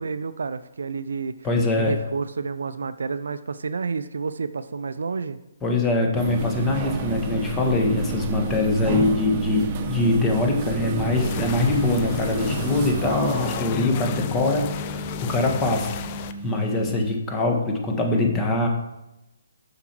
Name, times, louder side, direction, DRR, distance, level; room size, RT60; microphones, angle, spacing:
voice 1, 0.0-1.3 1.7-5.4, right 5 dB, 70° right, 13 dB, 0.4 m, -29 dB
voice 2, 1.4-1.9 5.6-18.7, left 2 dB, 15° left, 1 dB, 1.5 m, -23 dB
sound 1, 6.1-17.2, right 3 dB, 30° right, 0.9 m, -31 dB
sound 2, 11.1-16.3, left 11 dB, 35° left, 0.5 m, -32 dB
6.9 x 5.9 x 4.5 m, 0.92 s
figure-of-eight pair, 140°, 0 cm